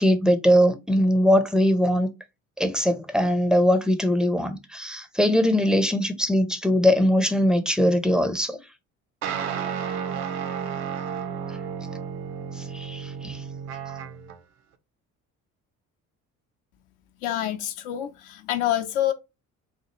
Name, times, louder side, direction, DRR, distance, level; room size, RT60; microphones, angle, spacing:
voice 1, 0.0-2.1 2.6-8.6 12.6-13.4, equal, ahead, 0.6 m, -21 dB
sound 1, 9.2-14.4, right 7 dB, 60° right, 0.7 m, -32 dB
voice 2, 17.2-19.1, left 12 dB, 65° left, 0.7 m, -27 dB
4.3 x 2.3 x 3.0 m
figure-of-eight pair, 50°, 43 cm